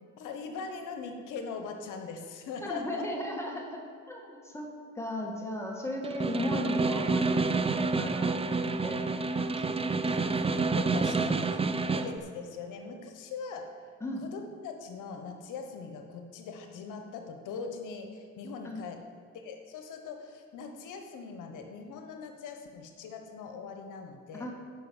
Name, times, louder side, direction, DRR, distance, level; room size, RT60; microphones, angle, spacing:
voice 1, 0.2-3.0 10.1-13.7 14.3-19.0 19.3-24.5, left 5 dB, 85° left, 5 dB, 1.2 m, -41 dB
voice 2, 2.6-8.3 8.8-9.7 14.0-14.2 18.6-18.8 24.3-24.5, left 1 dB, 10° left, 0 dB, 2.1 m, -37 dB
Snare drum, 6.0-12.2, right 3 dB, 20° right, 0.6 m, -28 dB
10.5 x 5.7 x 7.2 m, 2.3 s
cardioid pair, 90°, 30 cm